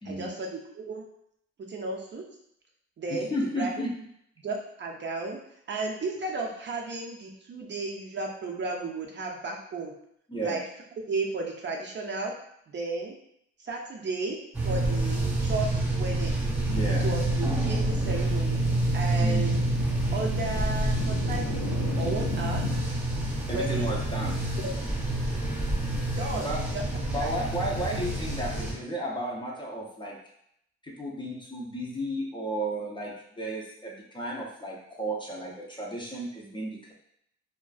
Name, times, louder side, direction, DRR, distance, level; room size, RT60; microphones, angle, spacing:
voice 1, 0.1-1.0 1.7-2.2 3.0-3.3 3.6-3.8 4.4-5.4 5.7-9.9 10.4-10.6 11.1-12.4 12.7-13.2 13.6-14.4 14.6-16.4 17.0-18.6 18.9-19.6 20.1-22.6 23.5-23.9 24.6-24.9 26.2-26.5 26.7-26.8 27.2-27.3, right 3 dB, 40° right, 0 dB, 0.5 m, -34 dB
voice 2, 3.1-3.9 10.3-10.6 16.7-17.1 19.2-19.6 23.5-24.4 26.4-26.6 27.1-30.2 30.8-36.9, right 1 dB, 15° left, -3 dB, 0.5 m, -33 dB
sound 1, 14.5-28.7, right 2 dB, 5° right, 1.0 m, -28 dB
sound 2, 16.7-22.8, left 6 dB, 80° left, 0.5 m, -36 dB
2.4 x 2.2 x 2.3 m, 0.73 s
cardioid pair, 90°, 30 cm